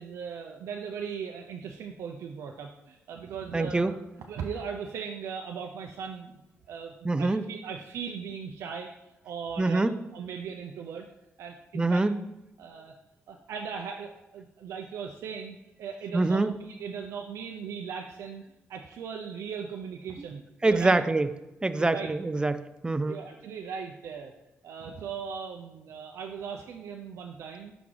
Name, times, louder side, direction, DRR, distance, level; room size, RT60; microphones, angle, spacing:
voice 1, 0.0-4.0 4.3-6.4 6.7-8.9 9.2-11.1 11.4-12.0 12.6-12.9 13.3-18.4 18.7-21.0 21.7-22.1 23.1-24.3 24.6-27.7, right 6 dB, 85° right, 2 dB, 0.4 m, -38 dB
voice 2, 3.5-3.9 7.0-7.5 9.6-9.9 11.7-12.2 16.1-16.5 20.6-21.3 21.6-23.2, right 2 dB, 20° right, 12 dB, 0.4 m, -25 dB
5.9 x 4.7 x 3.8 m, 0.94 s
cardioid pair, 60°, 5 cm